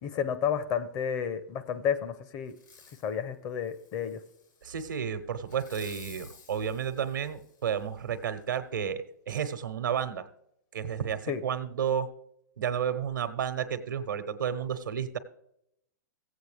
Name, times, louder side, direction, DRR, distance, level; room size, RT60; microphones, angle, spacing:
voice 1, 0.0-2.5 3.0-4.2 11.3-11.4, left 8 dB, 35° left, 11 dB, 0.7 m, -31 dB
Fireworks, 2.5-3.1 3.6-4.7 5.5-7.9 8.4-8.5, left 5 dB, 80° left, 2.4 m, -54 dB
voice 2, 4.6-10.3 10.7-12.1 12.6-15.2, right 8 dB, 90° right, 11 dB, 1.0 m, -32 dB
16.0 x 8.1 x 3.4 m, 0.76 s
hypercardioid pair, 135°, 10 cm